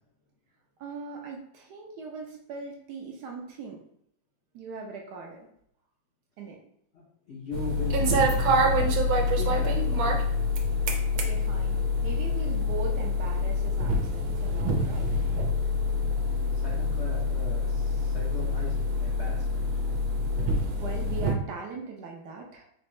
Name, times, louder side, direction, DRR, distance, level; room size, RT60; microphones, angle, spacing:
voice 1, 0.8-3.8 4.5-5.5 6.4-6.6 11.3-11.8 12.0-15.2 16.2-16.4 20.8-22.6, right 4 dB, 70° right, 1 dB, 1.0 m, -40 dB
voice 2, 7.3-8.5 9.4-10.1 16.5-18.7 19.0-19.7, left 3 dB, 70° left, -4 dB, 0.6 m, -39 dB
sound 1, 7.5-21.3, left 2 dB, 90° right, 1.4 m, -26 dB
4.2 x 2.7 x 3.1 m, 0.72 s
omnidirectional pair, 2.1 m